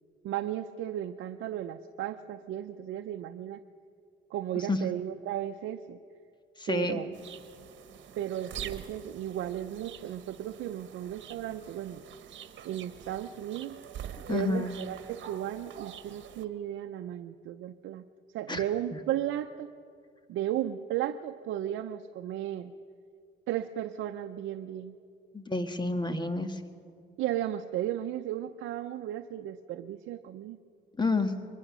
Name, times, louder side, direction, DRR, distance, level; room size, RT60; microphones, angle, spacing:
voice 1, 0.2-3.6 4.3-6.0 6.7-7.1 8.2-12.0 12.6-13.8 14.3-18.1 18.3-19.7 20.3-22.7 23.5-25.0 27.2-30.6, right 11 dB, 85° right, 6 dB, 0.6 m, -35 dB
voice 2, 6.6-7.0 14.3-14.7 18.5-18.6 25.3-26.6 31.0-31.3, left 3 dB, 20° left, 8 dB, 1.6 m, -29 dB
sound 1, 7.1-16.5, right 9 dB, 70° right, 1.3 m, -46 dB
23.5 x 20.0 x 6.2 m, 2.4 s
cardioid pair, 90°, 20 cm